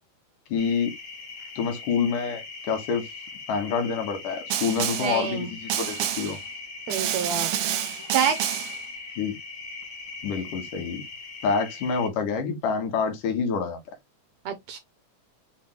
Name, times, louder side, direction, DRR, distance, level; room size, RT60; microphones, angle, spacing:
voice 1, 0.5-0.9 1.6-2.4 2.7-3.1 3.5-6.4 9.2-9.3 10.2-11.0 11.4-13.8, left 5 dB, 85° left, 3.0 m, -27 dB
sound 1, 0.6-12.1, left 3 dB, 60° left, 0.8 m, -40 dB
Snare drum, 4.5-5.2 5.7-6.4 6.9-8.8, right 11 dB, 90° right, 2.3 m, -28 dB
voice 2, 5.0-5.5 6.9-7.5 8.1-8.7 14.5-14.8, right 7 dB, 70° right, 1.7 m, -27 dB
6.7 x 2.3 x 3.2 m
omnidirectional pair, 3.6 m